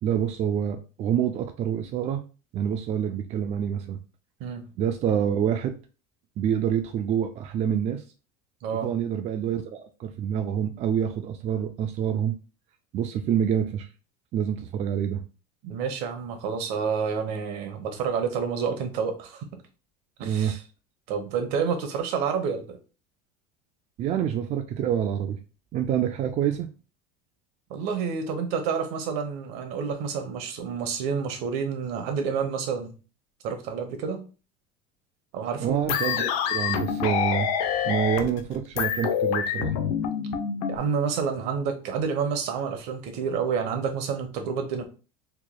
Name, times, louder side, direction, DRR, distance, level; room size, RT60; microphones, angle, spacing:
voice 1, 0.0-2.2 2.5-4.0 4.8-5.7 6.4-8.0 8.8-12.3 12.9-13.9 14.3-15.2 20.2-20.6 24.0-25.4 25.7-26.7 35.6-37.5 37.8-39.8, right 9 dB, 35° right, 6 dB, 0.4 m, -27 dB
voice 2, 8.6-8.9 15.6-19.5 20.2-20.6 21.1-22.8 27.7-33.0 33.4-34.2 35.3-35.8 40.7-44.8, right 6 dB, 65° right, 6 dB, 1.0 m, -29 dB
sound 1, 35.9-40.8, left 8 dB, 85° left, 0.7 m, -26 dB
4.4 x 3.1 x 2.2 m, 0.34 s
supercardioid pair, 130°, 19 cm